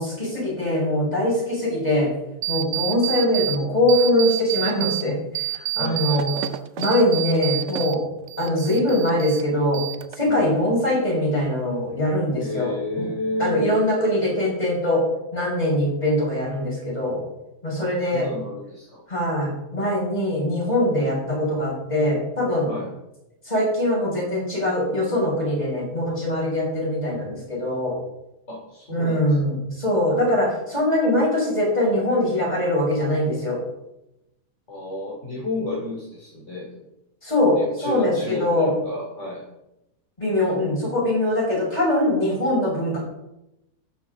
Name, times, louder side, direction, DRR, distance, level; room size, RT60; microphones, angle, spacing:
voice 1, 0.0-2.1 2.5-6.3 6.8-8.0 8.4-9.8 10.2-13.1 13.4-15.0 15.3-17.2 17.6-18.3 19.1-22.7 23.5-28.0 28.9-33.6 37.2-38.7 40.2-43.0, left 1 dB, 25° left, -3 dB, 5.5 m, -22 dB
sound 1, 2.4-3.6 3.9-5.0 5.4-8.0 8.3-9.4 9.7-10.4, right 15 dB, 65° right, 0.8 m, -28 dB
voice 2, 5.8-6.7 10.3-10.5 12.4-13.6 17.8-19.0 22.7-22.9 28.5-29.2 34.7-36.7 37.5-39.4, left 1 dB, 45° left, -5 dB, 3.2 m, -31 dB
14.0 x 10.0 x 3.8 m, 0.90 s
omnidirectional pair, 1.7 m